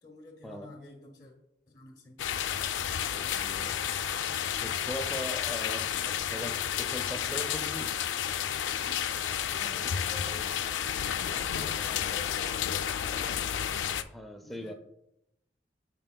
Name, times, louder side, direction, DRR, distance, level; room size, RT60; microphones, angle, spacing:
voice 1, 0.0-1.3 1.7-2.2 9.4-14.1 14.4-14.7, left 2 dB, 20° left, 0.9 m, -49 dB
sound 1, 2.2-14.0, left 9 dB, 90° left, 0.3 m, -31 dB
voice 2, 3.0-3.8 4.6-8.0 9.8-9.9 14.1-14.7, equal, ahead, 0.4 m, -40 dB
11.0 x 4.4 x 2.2 m
head